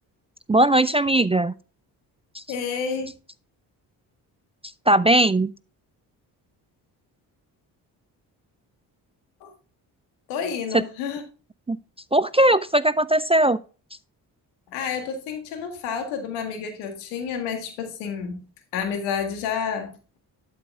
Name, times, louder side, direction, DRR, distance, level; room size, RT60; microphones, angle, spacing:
voice 1, 0.5-1.5 2.3-2.4 4.9-5.5 11.7-11.8 12.1-13.6, right 1 dB, 15° right, 0.3 m, -19 dB
voice 2, 2.5-3.1 9.4-9.5 10.3-11.2 14.7-18.4 18.7-20.0, left 6 dB, 90° left, 1.8 m, -30 dB
12.0 x 5.0 x 3.6 m
hypercardioid pair, 45°, 48 cm